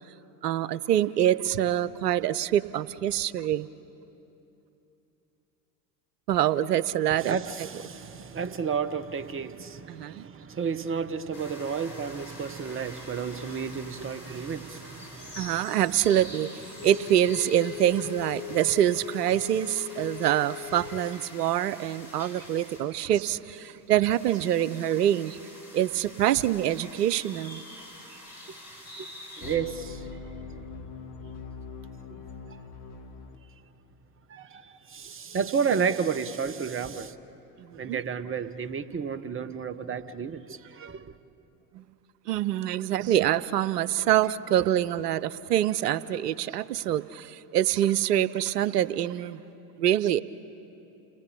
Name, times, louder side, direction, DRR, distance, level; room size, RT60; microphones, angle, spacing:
voice 1, 0.4-3.7 6.3-7.4 9.9-10.2 15.4-25.4 25.7-27.6 37.6-38.0 41.7-41.8 42.3-49.4 49.8-50.2, right 11 dB, 70° right, 0.8 m, -25 dB
voice 2, 7.1-15.8 16.8-16.9 29.0-29.1 29.4-30.1 32.1-32.6 34.3-37.1 37.8-41.1, right 6 dB, 25° right, 1.2 m, -32 dB
sound 1, 11.3-29.6, left 1 dB, 85° left, 5.6 m, -46 dB
Wind instrument woodwind instrument, 16.8-21.3, left 19 dB, 35° left, 0.9 m, -39 dB
sound 2, 29.4-33.4, left 4 dB, 50° left, 2.8 m, -42 dB
29.5 x 19.5 x 8.4 m
figure-of-eight pair, 70°, 49 cm